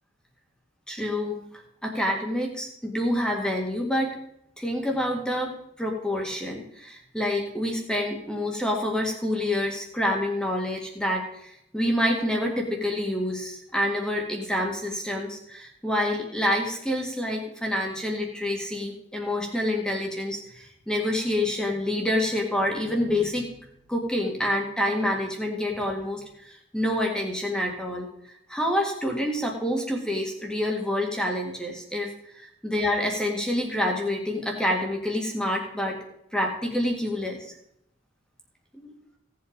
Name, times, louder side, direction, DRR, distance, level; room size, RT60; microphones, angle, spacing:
voice 1, 0.9-4.2 4.6-23.5 23.9-32.1 32.6-36.0 36.3-37.5 38.7-39.0, left 1 dB, 5° left, 0 dB, 1.9 m, -27 dB
16.5 x 7.9 x 5.2 m, 0.77 s
head